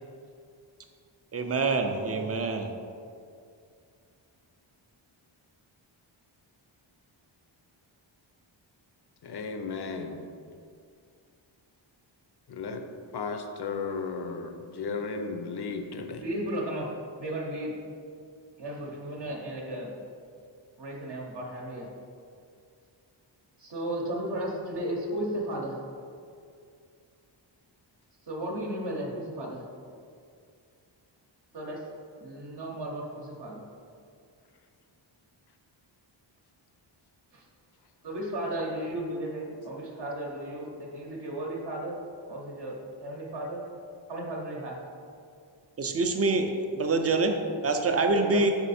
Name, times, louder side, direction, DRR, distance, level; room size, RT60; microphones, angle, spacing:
voice 1, 1.3-2.7 45.8-48.5, right 3 dB, 35° right, 5 dB, 0.4 m, -26 dB
voice 2, 9.2-10.2 12.5-12.8 13.1-16.2, left 4 dB, 55° left, 6 dB, 0.6 m, -34 dB
voice 3, 16.2-17.8 18.6-19.9 20.8-21.9 23.6-25.8 28.2-29.7 31.5-31.9 32.2-33.6 37.3-37.5 38.0-43.6 44.1-44.8 48.1-48.4, right 1 dB, 60° right, -2 dB, 0.8 m, -35 dB
5.4 x 4.4 x 4.2 m, 2.3 s
wide cardioid pair, 155°, 47 cm